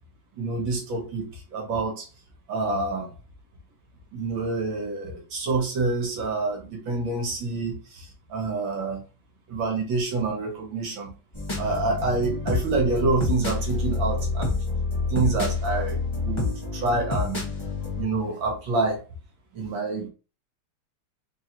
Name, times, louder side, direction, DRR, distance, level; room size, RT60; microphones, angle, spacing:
voice 1, 0.4-2.1 2.5-3.1 4.1-9.0 9.5-11.1 11.6-14.6 15.1-17.4 18.0-19.0 19.5-20.1, right 3 dB, 65° right, 1.8 m, -27 dB
sound 1, 11.3-18.0, left 3 dB, 20° left, 0.8 m, -28 dB
4.5 x 3.1 x 2.8 m
omnidirectional pair, 2.4 m